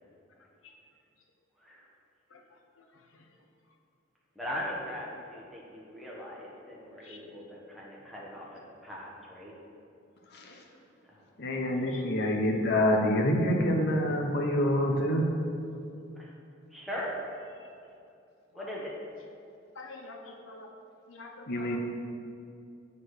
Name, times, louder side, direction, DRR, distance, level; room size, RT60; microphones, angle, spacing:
voice 1, 1.6-1.9 4.3-9.5 11.0-11.2 16.2-16.3 16.7-17.1 18.5-18.9, equal, ahead, -5 dB, 1.4 m, -40 dB
voice 2, 11.4-15.2 21.5-21.8, left 1 dB, 60° left, 1 dB, 0.9 m, -26 dB
voice 3, 19.7-20.7 21.1-21.8, left 3 dB, 85° left, 2 dB, 0.9 m, -47 dB
7.4 x 4.1 x 6.4 m, 2.6 s
head